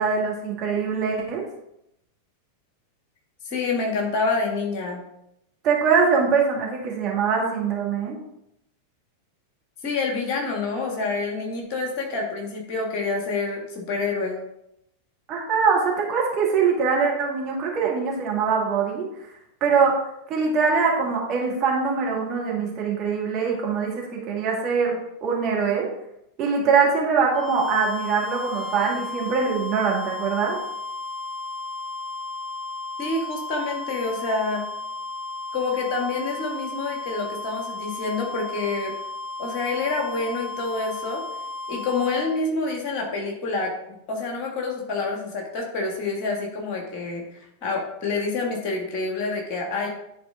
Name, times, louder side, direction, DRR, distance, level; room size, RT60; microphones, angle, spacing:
voice 1, 0.0-1.4 5.6-8.2 15.3-19.1 19.6-20.0 20.3-25.9 26.4-30.6, right 5 dB, 35° right, -2 dB, 2.1 m, -23 dB
voice 2, 3.4-5.0 9.8-14.4 33.0-34.7 35.5-38.9 39.4-41.2 41.7-49.9, left 3 dB, 40° left, 1 dB, 1.9 m, -27 dB
sound 1, 27.2-42.5, left 3 dB, ahead, 0.7 m, -34 dB
10.0 x 4.3 x 3.7 m, 0.81 s
figure-of-eight pair, 90°, 0 cm